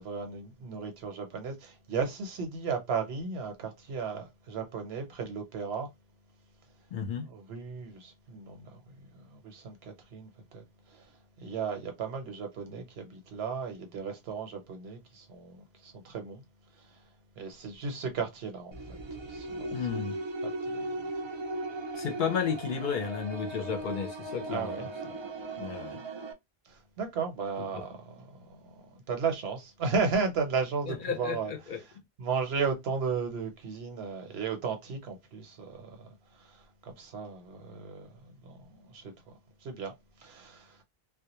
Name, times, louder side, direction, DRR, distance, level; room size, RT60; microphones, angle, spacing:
voice 1, 0.0-5.9 7.3-8.8 9.1-10.6 10.9-11.0 11.4-16.4 17.4-18.8 19.3-19.7 20.6-21.1 24.5-24.9 26.7-28.5 28.8-31.5 32.2-36.1 36.4-36.6 36.9-38.1 38.4-39.1 39.6-39.9 40.2-40.8, right 5 dB, 85° right, 1.0 m, -35 dB
voice 2, 6.9-7.3 19.7-20.2 22.0-24.8 25.6-26.0 27.7-27.8 30.9-31.8, left 7 dB, 60° left, 0.6 m, -33 dB
sound 1, 18.7-26.3, right 2 dB, 50° right, 0.3 m, -37 dB
2.2 x 2.1 x 2.9 m
omnidirectional pair, 1.0 m